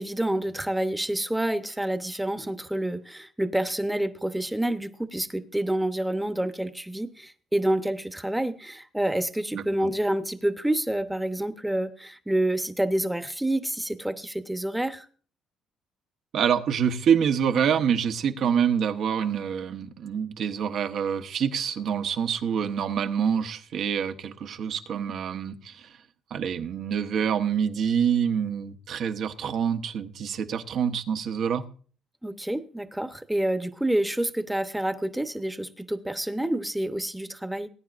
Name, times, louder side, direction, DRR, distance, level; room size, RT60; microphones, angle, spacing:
voice 1, 0.0-15.1 32.2-37.7, right 1 dB, 5° right, 1.0 m, -28 dB
voice 2, 9.5-9.9 16.3-26.0 26.3-31.6, right 7 dB, 65° right, 1.0 m, -26 dB
19.5 x 9.4 x 2.5 m
cardioid pair, 90°, 0 cm